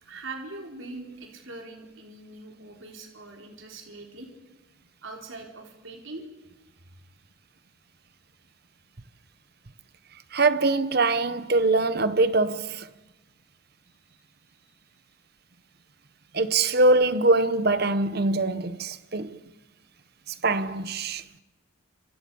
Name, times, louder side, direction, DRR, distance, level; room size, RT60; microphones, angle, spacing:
voice 1, 0.0-4.3 5.0-6.2 6.8-6.9 14.1-14.2, right 2 dB, 65° right, 3.8 m, -42 dB
voice 2, 10.3-12.9 16.3-19.4 20.3-21.2, right 2 dB, 50° right, 1.0 m, -23 dB
29.0 x 27.0 x 5.5 m
head